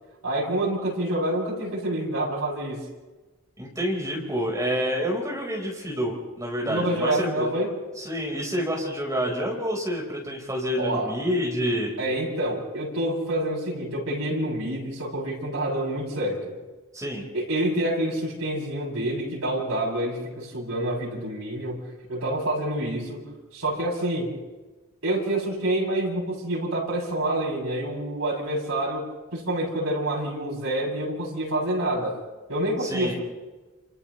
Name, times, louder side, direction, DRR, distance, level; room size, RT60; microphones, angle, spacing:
voice 1, 0.2-2.8 6.6-7.7 10.8-11.1 12.0-16.5 17.3-23.2 23.5-24.3 25.0-29.1 29.3-32.2 32.5-33.1, right 1 dB, 80° right, -3 dB, 7.2 m, -27 dB
voice 2, 3.6-7.5 8.0-11.9 16.9-17.2 32.8-33.1, equal, 15° right, -2 dB, 4.5 m, -28 dB
29.0 x 29.0 x 3.2 m, 1.2 s
head